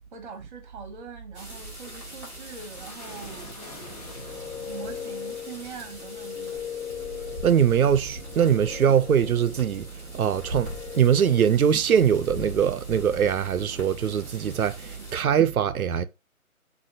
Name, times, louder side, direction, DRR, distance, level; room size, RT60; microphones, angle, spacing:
voice 1, 0.0-6.7 15.0-15.1, right 5 dB, 35° right, 1.0 m, -43 dB
sound 1, 1.3-15.1, left 1 dB, 5° left, 1.0 m, -43 dB
sound 2, 2.2-12.6, left 2 dB, 25° left, 0.8 m, -48 dB
sound 3, 3.9-11.8, left 8 dB, 70° left, 0.8 m, -39 dB
voice 2, 7.4-16.0, right 8 dB, 75° right, 0.6 m, -22 dB
6.4 x 2.6 x 2.7 m
figure-of-eight pair, 155°, 43 cm